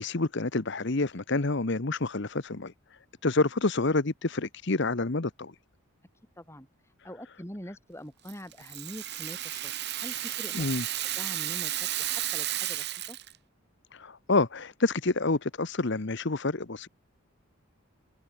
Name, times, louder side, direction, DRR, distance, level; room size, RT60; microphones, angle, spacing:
voice 1, 0.0-2.7 3.2-5.5 10.5-10.8 13.9-16.9, left 3 dB, 55° left, 1.0 m, -28 dB
voice 2, 6.4-10.7 11.0-13.2, equal, 10° left, 6.0 m, -44 dB
Rattle (instrument), 8.3-13.4, right 13 dB, 50° right, 1.9 m, -33 dB
head